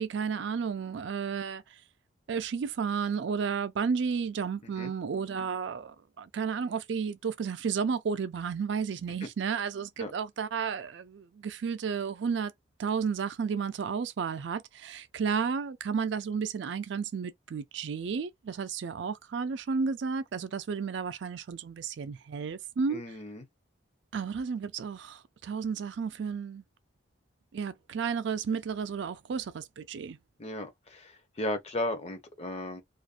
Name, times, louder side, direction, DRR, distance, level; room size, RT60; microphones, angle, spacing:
voice 1, 0.0-1.6 2.3-12.5 12.8-23.0 24.1-26.6 27.5-30.2, right 6 dB, 65° right, 0.4 m, -32 dB
voice 2, 22.9-23.4 30.4-32.8, left 1 dB, 30° left, 0.5 m, -35 dB
2.4 x 2.1 x 2.4 m
head